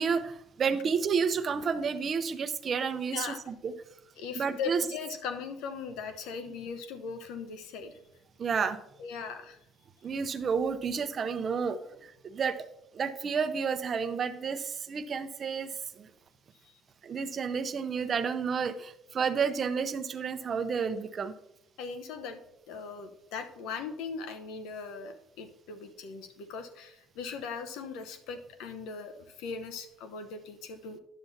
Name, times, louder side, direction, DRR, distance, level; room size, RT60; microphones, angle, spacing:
voice 1, 0.0-3.7 4.3-4.8 8.4-8.8 10.0-12.6 12.9-16.1 17.0-21.3, right 6 dB, 40° right, 11 dB, 0.6 m, -31 dB
voice 2, 4.2-8.0 9.0-9.6 21.8-22.4 22.7-29.1 29.4-31.0, left 5 dB, 80° left, 8 dB, 0.9 m, -39 dB
10.5 x 7.0 x 2.7 m, 0.81 s
cardioid pair, 100°, 0 cm